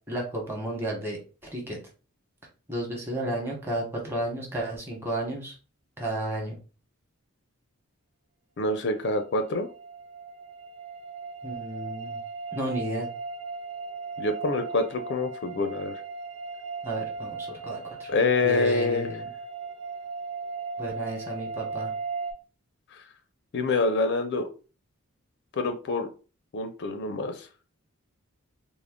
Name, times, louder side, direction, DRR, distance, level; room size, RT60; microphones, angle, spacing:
voice 1, 0.1-1.2 1.5-1.8 2.7-5.5 6.0-6.6 11.4-12.2 12.5-13.1 16.8-18.1 18.4-19.3 20.8-21.9, right 1 dB, 10° right, -1 dB, 1.0 m, -32 dB
voice 2, 8.6-9.7 14.2-16.0 18.1-19.1 22.9-23.0 23.5-24.5 25.5-26.1 26.5-27.5, left 3 dB, 55° left, 7 dB, 0.4 m, -26 dB
sound 1, 9.2-22.3, right 4 dB, 70° right, 0.7 m, -37 dB
3.6 x 2.0 x 3.5 m, 0.35 s
head